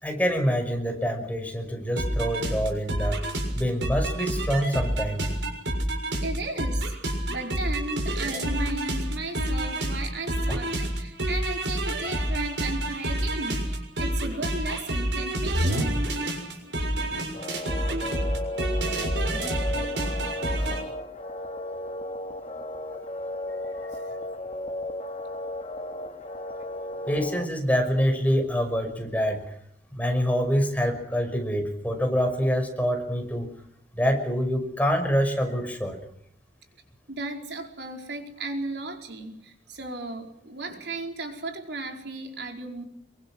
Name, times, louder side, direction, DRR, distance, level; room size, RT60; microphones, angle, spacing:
voice 1, 0.0-3.2 3.5-5.3 10.5-10.6 27.1-29.5 29.9-33.5 34.0-36.0, equal, 10° left, 5 dB, 5.7 m, -26 dB
sound 1, 2.0-20.8, right 1 dB, 85° right, 6.7 m, -28 dB
voice 2, 6.2-7.0 7.3-15.9 16.5-16.6 20.6-20.8 22.5-22.6 37.1-42.8, right 2 dB, 65° right, 3 dB, 4.7 m, -35 dB
sound 2, 17.3-27.4, left 1 dB, 35° left, 2.1 m, -35 dB
27.5 x 24.0 x 6.3 m, 0.71 s
head